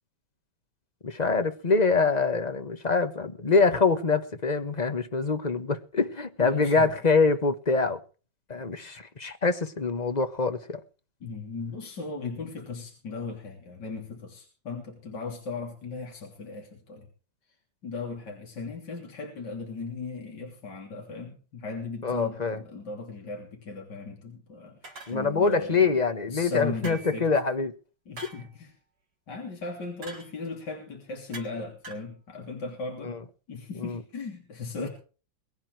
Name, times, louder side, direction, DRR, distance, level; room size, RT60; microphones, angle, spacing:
voice 1, 1.0-8.0 8.5-10.8 22.0-22.6 25.1-27.7 33.0-33.2 33.8-34.0 34.8-34.9, left 4 dB, 25° left, 1.0 m, -25 dB
voice 2, 6.4-6.9 11.2-17.1 17.8-25.9 26.3-27.2 28.1-28.7 29.3-33.2 33.5-34.9, left 4 dB, 65° left, 3.8 m, -37 dB
sound 1, 24.8-25.6 26.8-27.3 28.2-28.5 30.0-30.3 31.3-31.6 31.8-32.1, right 2 dB, 55° right, 4.0 m, -43 dB
22.5 x 9.7 x 4.7 m
omnidirectional pair, 2.0 m